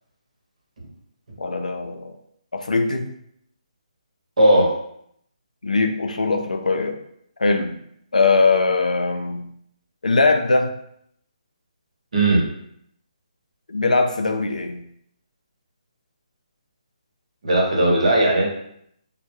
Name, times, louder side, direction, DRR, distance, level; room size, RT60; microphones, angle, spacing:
voice 1, 1.4-2.2 2.5-3.1 5.6-7.0 7.4-7.8 8.1-9.5 10.0-10.7 13.7-14.8, left 3 dB, 85° left, 5 dB, 0.4 m, -21 dB
voice 2, 4.4-4.7 12.1-12.4 17.4-18.5, right 1 dB, 65° right, -2 dB, 0.9 m, -17 dB
2.1 x 2.1 x 3.0 m, 0.72 s
figure-of-eight pair, 150°, 4 cm